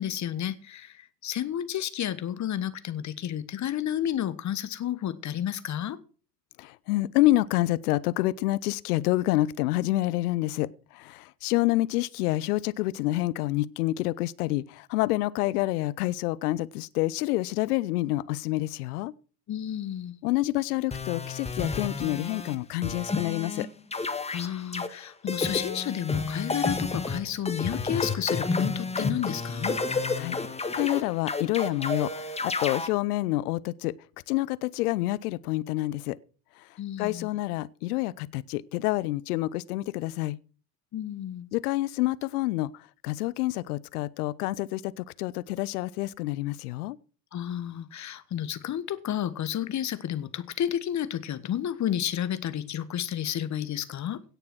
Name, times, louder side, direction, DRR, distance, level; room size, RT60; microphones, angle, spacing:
voice 1, 0.0-6.0 19.5-20.1 24.3-29.8 36.8-37.3 40.9-41.4 47.3-54.2, left 10 dB, 35° left, 1.4 m, -31 dB
voice 2, 6.6-19.1 20.2-23.7 30.2-30.4 30.7-33.9 34.3-36.2 37.0-40.4 41.5-42.7 43.0-47.0, left 17 dB, 65° left, 0.8 m, -28 dB
sound 1, 20.9-22.6 22.8-23.7 23.9-24.9 25.3-32.9, left 3 dB, 10° left, 1.6 m, -30 dB
17.0 x 6.9 x 6.2 m
figure-of-eight pair, 70°, 50 cm